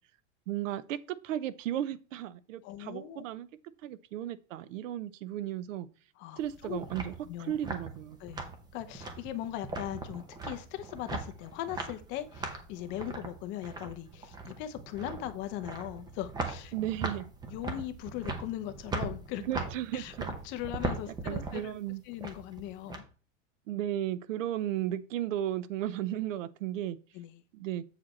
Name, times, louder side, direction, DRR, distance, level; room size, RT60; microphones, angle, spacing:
voice 1, 0.5-3.5 3.8-5.9 6.4-8.2 16.7-17.3 19.5-20.3 21.2-22.0 23.7-27.0 27.5-27.8, right 12 dB, 75° right, 0.7 m, -35 dB
voice 2, 2.6-3.2 6.2-6.8 7.2-7.5 8.2-8.5 8.7-16.7 17.5-20.1 20.4-21.7 22.0-23.0 27.1-27.4, left 13 dB, 30° left, 0.6 m, -39 dB
sound 1, 6.4-23.0, right 3 dB, 10° right, 0.8 m, -39 dB
7.9 x 5.0 x 4.2 m
supercardioid pair, 155°, 38 cm